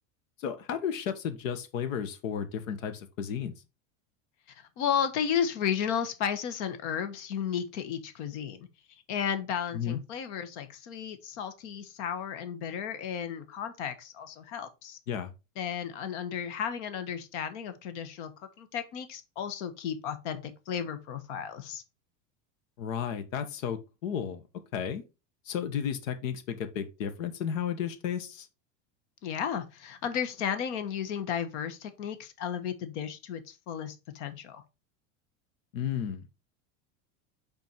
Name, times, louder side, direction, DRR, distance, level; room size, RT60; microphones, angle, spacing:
voice 1, 0.4-3.5 9.7-10.0 15.1-15.3 22.8-24.4 24.7-25.0 25.4-28.5 35.7-36.3, left 8 dB, 90° left, 1.4 m, -33 dB
voice 2, 4.5-8.7 9.1-15.0 15.6-21.8 29.2-34.6, left 8 dB, 65° left, 1.3 m, -33 dB
5.6 x 4.4 x 4.5 m
supercardioid pair, 165°, 38 cm